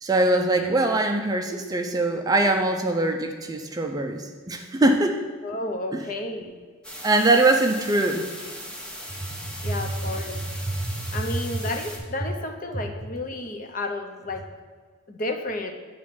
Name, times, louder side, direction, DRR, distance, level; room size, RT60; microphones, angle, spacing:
voice 1, 0.0-5.2 5.9-6.0 7.0-8.3 10.8-10.9, right 2 dB, 20° right, 4 dB, 0.4 m, -22 dB
voice 2, 5.4-6.5 9.6-10.4 11.1-14.4 15.1-15.7, left 2 dB, 40° left, 5 dB, 0.6 m, -31 dB
sound 1, 6.8-12.0, equal, 5° left, 0.8 m, -38 dB
8.9 x 3.1 x 5.9 m, 1.5 s
head